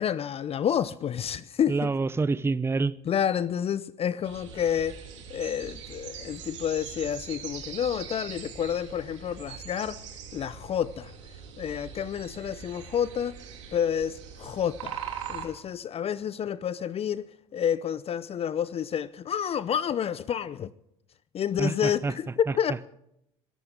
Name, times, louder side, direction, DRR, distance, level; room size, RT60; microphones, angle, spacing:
voice 1, 0.0-1.9 3.1-5.0 5.3-10.0 10.3-11.1 11.6-13.4 13.7-15.0 15.3-17.3 17.5-20.7 21.3-22.3 22.6-22.9, left 9 dB, 40° left, 0.7 m, -29 dB
voice 2, 1.7-3.0 21.6-22.1 22.5-22.6, right 3 dB, 15° right, 0.7 m, -27 dB
sound 1, 4.2-15.5, right 8 dB, 80° right, 3.2 m, -42 dB
22.5 x 15.0 x 3.8 m
hypercardioid pair, 65°, 15 cm